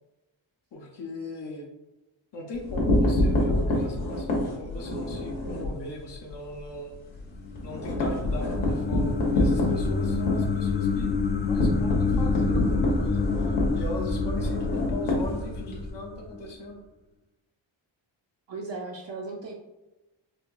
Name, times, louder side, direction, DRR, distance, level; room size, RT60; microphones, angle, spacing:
voice 1, 0.7-1.7 2.3-6.9 7.6-11.1 11.4-16.8, left 2 dB, 60° left, 0 dB, 0.6 m, -38 dB
sound 1, 2.5-5.7 6.1-6.3 6.6-6.7 7.0-15.9, left 1 dB, 75° left, 1.1 m, -26 dB
sound 2, 7.2-16.5, left 4 dB, 25° left, 0.3 m, -28 dB
voice 2, 18.5-19.5, right 3 dB, 60° right, -2 dB, 0.6 m, -36 dB
4.2 x 2.7 x 2.3 m, 1.0 s
wide cardioid pair, 95°, 48 cm